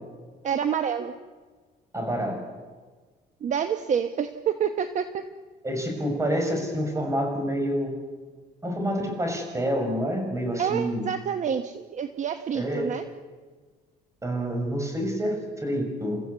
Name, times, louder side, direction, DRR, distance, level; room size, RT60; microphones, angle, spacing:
voice 1, 0.4-1.1 3.4-5.2 10.6-13.0, right 8 dB, 45° right, 9 dB, 1.2 m, -28 dB
voice 2, 1.9-2.4 5.6-7.9 8.6-11.0 12.5-12.9 14.2-16.2, equal, 15° right, 4 dB, 6.8 m, -28 dB
29.5 x 15.0 x 8.3 m, 1.4 s
cardioid pair, 110°, 17 cm